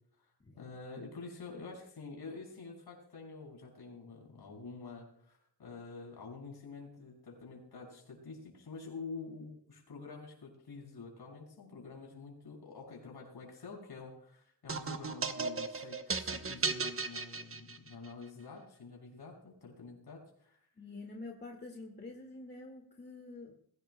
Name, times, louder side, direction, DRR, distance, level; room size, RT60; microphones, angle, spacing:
voice 1, 0.6-20.6, left 4 dB, 65° left, 0 dB, 5.9 m, -48 dB
sound 1, 14.7-18.1, right 4 dB, 30° right, 0.9 m, -36 dB
voice 2, 20.8-23.5, left 2 dB, 25° left, 1 dB, 2.0 m, -47 dB
22.0 x 16.5 x 2.2 m, 0.65 s
wide cardioid pair, 160°, 42 cm